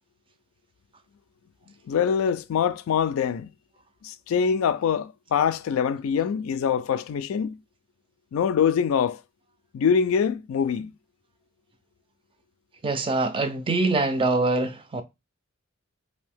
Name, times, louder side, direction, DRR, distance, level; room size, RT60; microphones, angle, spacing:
voice 1, 1.9-3.5 4.0-7.6 8.3-9.2 9.7-10.9, left 7 dB, 75° left, 0.3 m, -24 dB
voice 2, 12.8-15.0, right 3 dB, 25° right, 0.4 m, -24 dB
2.7 x 2.6 x 3.4 m
head